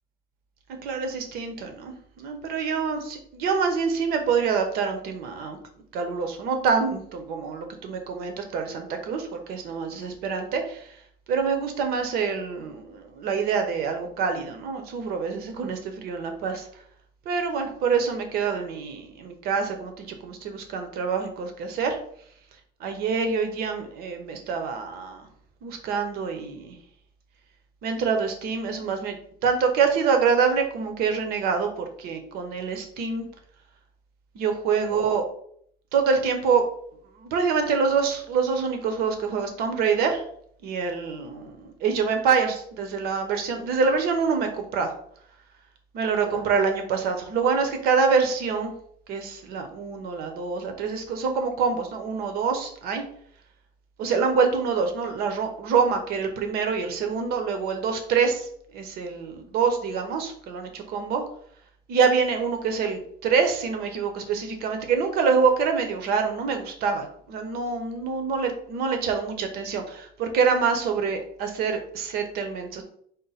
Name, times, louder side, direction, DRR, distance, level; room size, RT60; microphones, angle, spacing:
voice 1, 0.8-5.6 5.9-10.8 11.3-16.7 17.3-22.0 22.8-25.2 25.6-26.8 27.8-29.2 29.4-33.3 34.3-35.2 35.9-36.6 37.2-40.2 40.6-44.9 45.9-48.7 49.1-53.0 54.0-61.2 61.9-72.8, right 5 dB, 65° right, 5 dB, 0.8 m, -26 dB
5.3 x 2.1 x 4.0 m, 0.63 s
cardioid pair, 170°, 17 cm